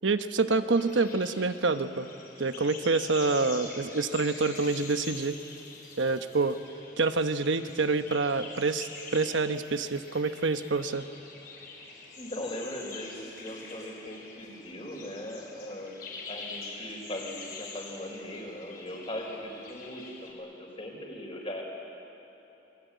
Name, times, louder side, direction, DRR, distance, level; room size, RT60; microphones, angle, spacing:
voice 1, 0.0-2.1 2.4-5.4 6.0-6.6 7.0-11.0, right 3 dB, 85° right, 9 dB, 1.0 m, -27 dB
voice 2, 0.6-1.0 12.2-16.0 16.3-21.6, left 1 dB, 30° left, 1 dB, 4.8 m, -39 dB
sound 1, 0.7-20.3, left 4 dB, 50° left, 4.9 m, -45 dB
28.0 x 21.5 x 9.4 m, 3.0 s
head